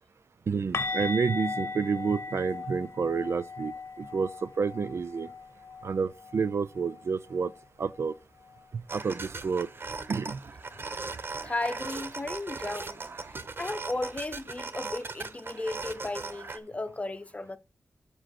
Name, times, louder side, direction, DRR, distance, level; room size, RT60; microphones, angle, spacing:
voice 1, 0.5-3.7 4.0-5.3 5.8-7.5 7.8-8.1 8.7-9.7 10.1-10.4, right 5 dB, 70° right, 0.5 m, -29 dB
sound 1, 0.7-6.5 6.8-7.0 7.4-7.5 10.8-10.9, left 3 dB, 65° left, 0.8 m, -37 dB
sound 2, 8.9-16.6, right 4 dB, 50° right, 0.8 m, -39 dB
voice 2, 11.4-13.0 13.6-17.6, left 2 dB, 30° left, 0.8 m, -35 dB
7.7 x 6.2 x 4.2 m
wide cardioid pair, 75°, 5 cm